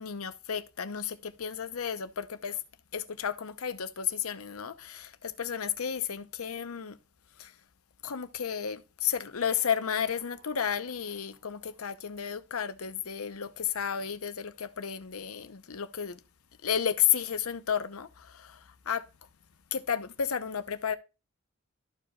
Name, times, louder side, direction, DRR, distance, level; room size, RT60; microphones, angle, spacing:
voice 1, 0.0-2.6 2.9-7.0 7.4-7.5 8.0-16.2 16.6-19.0 19.7-20.9, left 8 dB, 85° left, 0.8 m, -32 dB
sound 1, 9.3-12.4, right 4 dB, 85° right, 3.6 m, -62 dB
13.5 x 4.8 x 2.3 m
head